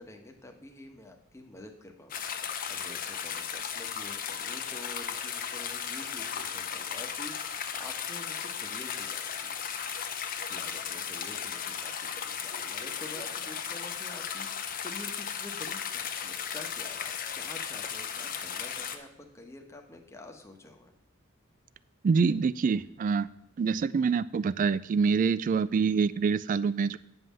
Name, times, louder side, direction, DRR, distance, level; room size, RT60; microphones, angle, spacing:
voice 1, 0.0-2.3 2.7-9.5 10.4-20.9, left 1 dB, 15° left, 2 dB, 1.1 m, -48 dB
sound 1, 2.1-19.0, left 7 dB, 45° left, 0.8 m, -36 dB
voice 2, 22.0-23.3 23.6-27.0, right 5 dB, 40° right, 18 dB, 0.3 m, -26 dB
9.4 x 5.6 x 7.3 m, 0.80 s
head